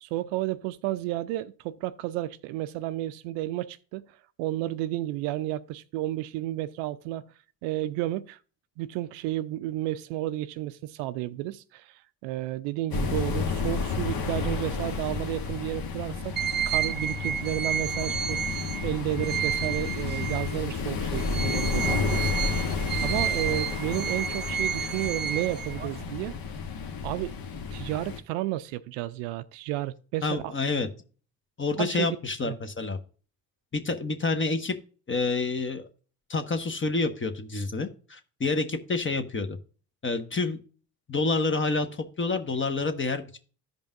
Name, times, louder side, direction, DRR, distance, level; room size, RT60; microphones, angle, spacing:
voice 1, 0.0-4.0 4.4-7.3 7.6-8.4 8.8-16.4 16.7-18.4 18.8-22.3 23.0-26.4 27.0-27.3 27.7-30.5 31.8-32.2 32.4-32.6, right 15 dB, 65° right, 0.6 m, -32 dB
sound 1, 12.9-28.2, left 5 dB, 45° left, 1.2 m, -31 dB
sound 2, 16.4-20.7 21.1-26.0, right 8 dB, 25° right, 0.4 m, -31 dB
voice 2, 30.2-30.9 31.6-33.0 33.7-34.8 35.1-35.9 36.3-39.6 40.0-40.6 41.1-43.4, left 3 dB, 25° left, 1.1 m, -28 dB
14.5 x 5.3 x 2.6 m
hypercardioid pair, 50°, 49 cm